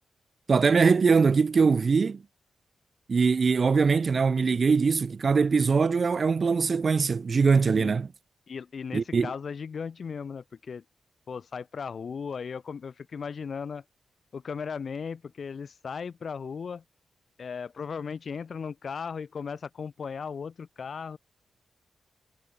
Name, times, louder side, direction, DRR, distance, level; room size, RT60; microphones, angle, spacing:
voice 1, 0.5-2.2 3.1-8.1 8.9-9.3, right 5 dB, 40° right, 0.3 m, -22 dB
voice 2, 8.5-10.8 11.3-13.8 14.3-16.8 17.4-21.2, left 6 dB, 50° left, 1.5 m, -36 dB
wide cardioid pair, 140°, 0 cm